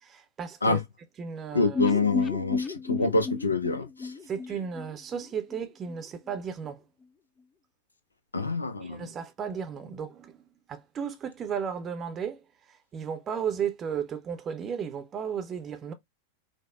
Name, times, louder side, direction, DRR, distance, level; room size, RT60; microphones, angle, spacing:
voice 1, 0.0-0.8 1.2-1.9 4.3-6.8 8.8-15.9, right 7 dB, 25° right, 0.6 m, -34 dB
voice 2, 1.5-4.1 8.3-9.0, left 3 dB, 80° left, 0.5 m, -26 dB
sound 1, 1.7-5.6 5.9-6.0 6.3-6.4, left 4 dB, 20° left, 0.3 m, -32 dB
4.9 x 2.1 x 2.3 m
figure-of-eight pair, 90°, 0 cm